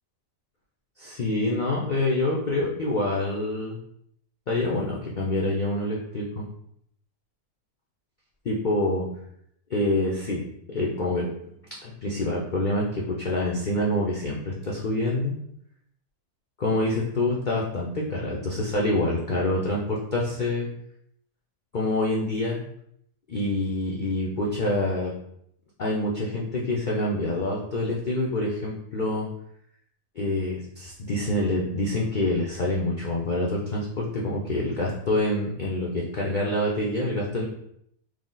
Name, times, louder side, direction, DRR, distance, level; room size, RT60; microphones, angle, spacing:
voice 1, 1.0-3.8 4.5-6.5 8.4-9.1 9.7-10.4 10.7-11.2 11.8-15.3 16.6-20.7 21.7-22.6 23.3-25.1 25.8-29.3 30.2-37.4, left 1 dB, 75° left, -4 dB, 0.4 m, -26 dB
4.7 x 2.0 x 3.8 m, 0.71 s
omnidirectional pair, 1.7 m